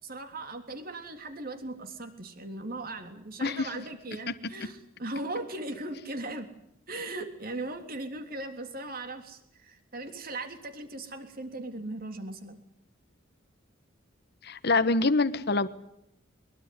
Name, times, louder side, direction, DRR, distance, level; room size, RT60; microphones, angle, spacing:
voice 1, 0.0-6.5 6.9-12.6, right 2 dB, 50° right, 7 dB, 3.4 m, -38 dB
voice 2, 14.4-15.7, left 3 dB, 55° left, 13 dB, 1.3 m, -25 dB
23.0 x 22.0 x 9.7 m, 0.76 s
head